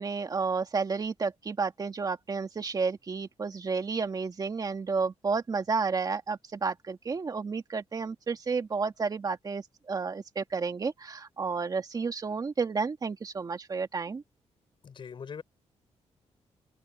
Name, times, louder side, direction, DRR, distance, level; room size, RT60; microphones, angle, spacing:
voice 1, 0.0-14.2, right 4 dB, 35° right, 2.1 m, -31 dB
voice 2, 14.8-15.4, left 6 dB, 45° left, 5.8 m, -41 dB
open air
wide cardioid pair, 140°, 12 cm